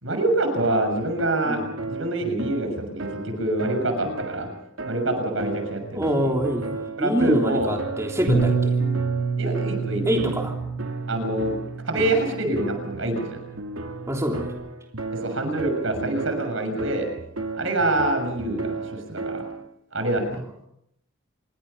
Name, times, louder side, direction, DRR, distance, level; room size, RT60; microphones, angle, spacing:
voice 1, 0.0-1.6 1.9-4.5 4.8-6.3 7.0-7.7 9.4-10.0 11.1-11.5 11.9-13.4 15.2-17.1 17.5-18.8 19.1-19.4 19.9-20.4, right 1 dB, 70° right, 6 dB, 6.6 m, -25 dB
sound 1, 0.6-19.7, right 3 dB, 90° right, 2.7 m, -34 dB
voice 2, 5.9-6.7 7.0-8.8 10.1-10.6 14.1-14.5 20.3-20.4, equal, 15° right, 0 dB, 3.3 m, -25 dB
Bass guitar, 8.3-14.5, right 4 dB, 60° left, 6.4 m, -28 dB
27.5 x 23.0 x 5.5 m, 0.77 s
head